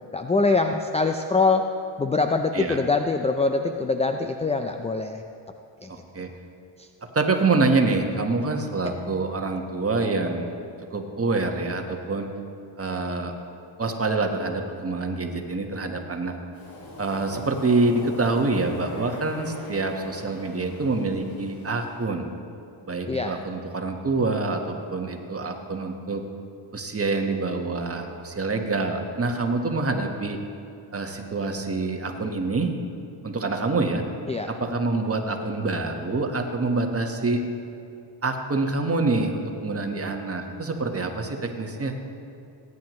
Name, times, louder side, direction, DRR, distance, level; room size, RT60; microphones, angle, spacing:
voice 1, 0.1-1.7 2.0-5.2 5.8-5.9 23.1-23.4 34.3-34.5, left 3 dB, 15° left, 6 dB, 0.4 m, -23 dB
voice 2, 5.9-6.3 7.1-10.5 10.9-12.3 12.8-13.3 13.8-16.3 17.0-22.3 22.9-26.2 26.7-30.4 30.9-32.8 33.2-34.0 34.5-37.4 38.2-42.0, right 3 dB, 30° right, 3 dB, 1.4 m, -26 dB
Waves surf, 16.5-22.0, left 1 dB, 45° left, 2.4 m, -42 dB
18.0 x 9.6 x 3.2 m, 2.6 s
cardioid pair, 75°, 49 cm